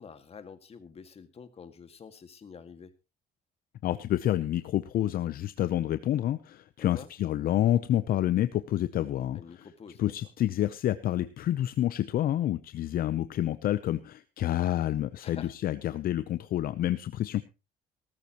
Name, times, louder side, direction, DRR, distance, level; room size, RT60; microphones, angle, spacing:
voice 1, 0.0-2.9 6.8-7.1 9.3-10.0 15.2-15.5, left 6 dB, 35° left, 9 dB, 2.0 m, -47 dB
voice 2, 3.8-9.4 10.0-17.4, left 12 dB, 60° left, 13 dB, 0.7 m, -28 dB
18.0 x 14.0 x 3.0 m, 0.29 s
cardioid pair, 110°, 17 cm